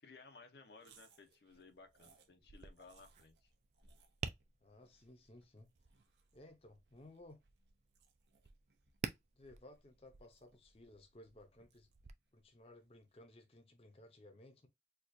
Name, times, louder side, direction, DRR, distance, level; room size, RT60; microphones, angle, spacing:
voice 1, 0.0-3.5, left 4 dB, 70° left, 0.7 m, -59 dB
sound 1, 0.8-13.2, right 4 dB, 80° right, 0.8 m, -71 dB
Tap, 2.4-12.1, right 5 dB, 40° right, 0.3 m, -51 dB
voice 2, 4.6-5.7 6.3-7.4 9.3-11.9 12.3-14.7, left 1 dB, 35° left, 0.6 m, -59 dB
4.4 x 2.4 x 2.5 m
head